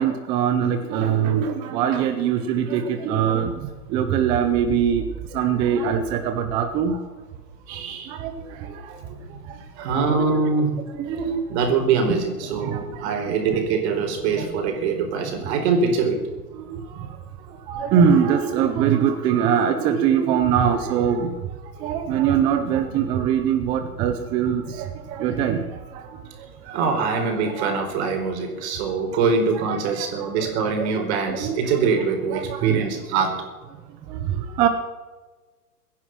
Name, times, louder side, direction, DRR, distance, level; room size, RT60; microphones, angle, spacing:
voice 1, 0.0-5.0 5.3-7.0 8.1-8.3 8.6-9.0 10.1-10.4 10.9-11.4 12.1-12.2 12.5-13.6 13.9-14.0 14.3-14.5 16.5-17.2 17.7-21.3 21.8-26.2 26.9-27.0 27.6-27.8 28.9-29.0 29.7-30.5 30.8-31.6 32.3-32.9 34.1-34.7, right 8 dB, 10° right, 7 dB, 0.4 m, -23 dB
voice 2, 7.7-8.1 9.8-10.8 11.5-16.2 26.4-33.4, right 5 dB, 45° right, 4 dB, 4.5 m, -23 dB
22.5 x 10.0 x 6.1 m, 1.3 s
hypercardioid pair, 135°, 46 cm